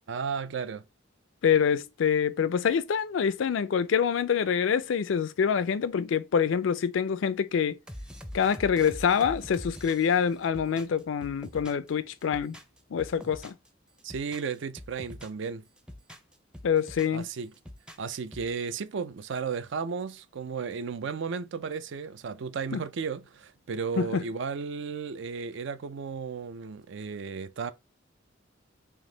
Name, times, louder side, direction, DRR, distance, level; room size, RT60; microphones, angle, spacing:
voice 1, 0.1-0.8 14.0-15.7 17.1-17.5 18.0-27.7, right 5 dB, 65° right, 0.4 m, -34 dB
voice 2, 1.4-7.8 8.3-12.6 12.9-13.6 16.6-17.3 22.7-22.8 24.0-24.2, left 7 dB, 70° left, 0.4 m, -26 dB
sound 1, 7.9-11.9 12.2-13.7 14.0-15.4 15.8-17.2 17.5-18.5, equal, 5° right, 0.5 m, -44 dB
3.5 x 2.8 x 3.8 m
head